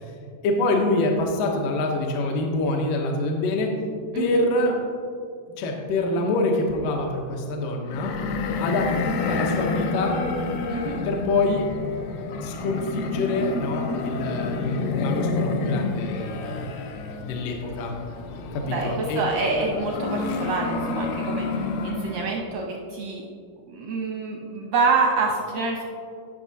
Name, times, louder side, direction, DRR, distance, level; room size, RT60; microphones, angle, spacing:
voice 1, 0.4-3.7 4.2-4.8 5.6-8.1 8.6-10.2 11.1-11.7 12.4-18.0 18.5-19.2, left 2 dB, 70° left, 0 dB, 2.4 m, -25 dB
sound 1, 7.9-22.4, left 3 dB, 90° left, 2.7 m, -29 dB
voice 2, 18.7-23.2 23.7-25.8, right 4 dB, 80° right, 0 dB, 1.6 m, -27 dB
17.5 x 6.0 x 2.7 m, 2.3 s
omnidirectional pair, 4.3 m